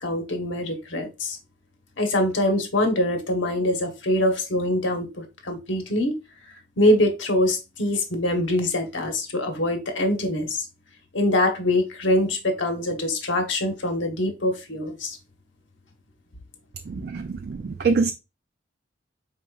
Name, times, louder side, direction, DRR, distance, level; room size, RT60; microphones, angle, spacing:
voice 1, 0.0-1.4 2.0-6.2 6.8-10.7 11.1-15.2, left 1 dB, 80° left, 1.1 m, -24 dB
voice 2, 17.0-18.1, right 4 dB, 55° right, 0.4 m, -24 dB
4.9 x 4.2 x 2.3 m
head